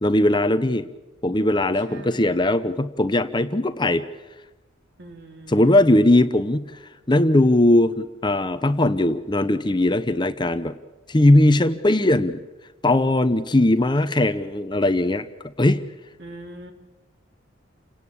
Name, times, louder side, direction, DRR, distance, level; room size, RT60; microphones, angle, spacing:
voice 1, 0.0-0.9 1.2-4.0 5.5-6.7 7.1-10.8 11.1-12.4 12.8-15.2 15.6-15.8, left 1 dB, 20° left, 11 dB, 0.8 m, -19 dB
voice 2, 1.9-2.6 5.0-5.9 16.2-16.7, right 1 dB, 55° right, 4 dB, 3.4 m, -42 dB
29.0 x 18.0 x 8.6 m, 1.1 s
head